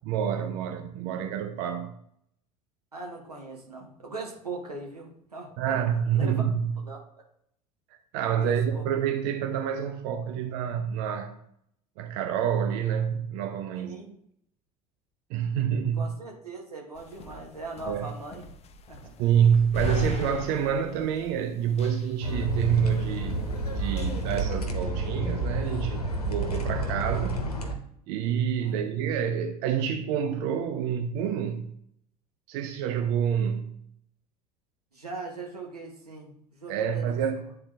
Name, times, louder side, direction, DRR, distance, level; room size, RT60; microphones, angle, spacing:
voice 1, 0.1-2.0 5.6-6.7 8.1-11.3 12.0-14.0 15.3-16.1 17.9-18.1 19.2-27.4 28.1-31.7 32.5-33.7 36.7-37.5, right 8 dB, 55° right, 0.6 m, -27 dB
voice 2, 2.9-5.8 6.1-6.4 6.8-7.0 8.4-8.8 13.7-14.2 16.0-18.5 18.9-19.1 28.6-28.8 34.9-37.2, right 3 dB, 90° right, 1.2 m, -40 dB
sound 1, 16.9-24.4, left 4 dB, 35° left, 0.5 m, -40 dB
sound 2, 22.2-27.7, right 2 dB, 85° left, 0.8 m, -30 dB
9.7 x 3.8 x 2.6 m
figure-of-eight pair, 65°, 19 cm